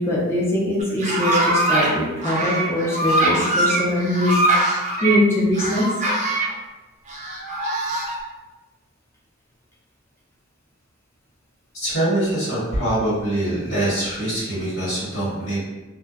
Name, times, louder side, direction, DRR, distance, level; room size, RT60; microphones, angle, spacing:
voice 1, 0.0-5.9, left 1 dB, 10° left, -5 dB, 0.5 m, -22 dB
sound 1, 0.8-1.9 2.2-5.2 5.5-6.5 7.1-8.2, right 1 dB, 35° right, 0.4 m, -22 dB
voice 2, 11.7-15.6, right 1 dB, 80° left, -10 dB, 1.4 m, -23 dB
2.5 x 2.1 x 2.4 m, 1.1 s
head